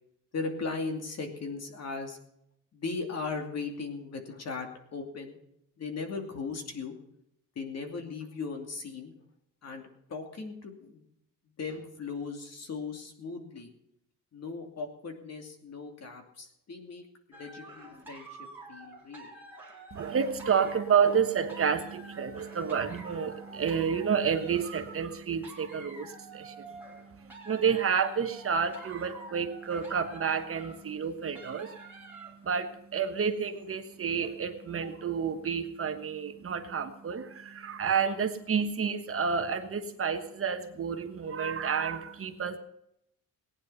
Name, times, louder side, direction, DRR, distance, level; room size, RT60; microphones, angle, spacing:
voice 1, 0.3-2.2 2.7-5.4 5.8-7.0 7.5-9.1 9.6-11.0 11.6-13.7 14.3-19.3, left 4 dB, 50° left, 4 dB, 2.7 m, -38 dB
sound 1, 17.3-32.5 33.3-33.6 34.1-34.2, right 2 dB, 5° right, 3.4 m, -49 dB
voice 2, 19.9-42.6, right 6 dB, 40° right, 6 dB, 1.3 m, -30 dB
19.0 x 9.7 x 5.7 m, 0.76 s
wide cardioid pair, 165°, 34 cm